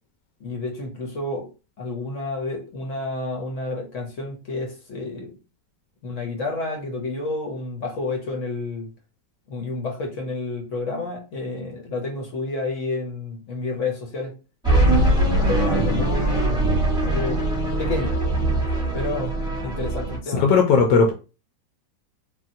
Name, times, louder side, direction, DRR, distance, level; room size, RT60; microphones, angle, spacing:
voice 1, 0.4-1.5 1.8-5.4 6.0-8.9 9.5-14.3 15.5-16.7 17.0-17.4 17.8-18.1 18.7-19.3 19.6-20.4, left 2 dB, 60° left, 0.9 m, -30 dB
sound 1, 14.6-20.2, right 1 dB, 5° right, 0.9 m, -21 dB
voice 2, 20.3-21.1, left 5 dB, 75° left, 1.1 m, -17 dB
3.5 x 2.2 x 2.6 m
omnidirectional pair, 1.9 m